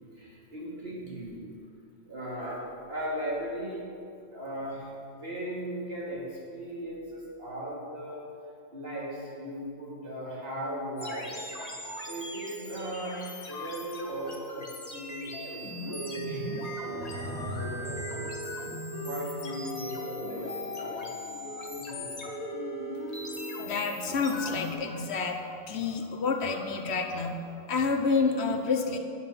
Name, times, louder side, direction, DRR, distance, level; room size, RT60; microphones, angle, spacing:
voice 1, 0.2-1.4 2.1-3.8 4.3-6.2 6.5-8.2 8.7-11.4 12.1-14.7 14.9-18.4 19.0-20.5 20.7-21.1 21.7-22.2, equal, 65° right, -5 dB, 2.7 m, -37 dB
sound 1, 11.0-24.7, equal, 35° left, 1.3 m, -38 dB
voice 2, 23.6-29.0, left 4 dB, 80° left, 5 dB, 1.1 m, -29 dB
10.0 x 7.7 x 5.7 m, 2.5 s
omnidirectional pair, 1.1 m